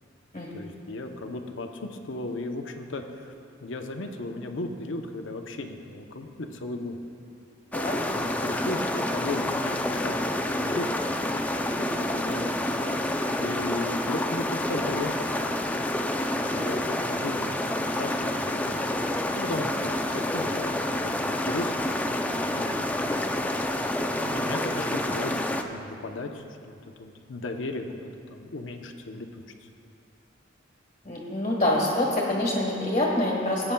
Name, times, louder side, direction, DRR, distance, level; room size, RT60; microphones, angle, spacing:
voice 1, 0.5-3.3 3.6-7.0 8.1-10.9 11.6-12.6 13.4-15.3 16.5-18.8 19.3-23.2 24.3-29.3 29.6-29.7, left 2 dB, 70° left, 4 dB, 0.7 m, -36 dB
sound 1, 7.7-25.6, left 1 dB, 10° left, 0.4 m, -28 dB
voice 2, 31.0-33.7, left 1 dB, 35° left, -4 dB, 1.4 m, -26 dB
18.5 x 8.8 x 2.3 m, 2.6 s
head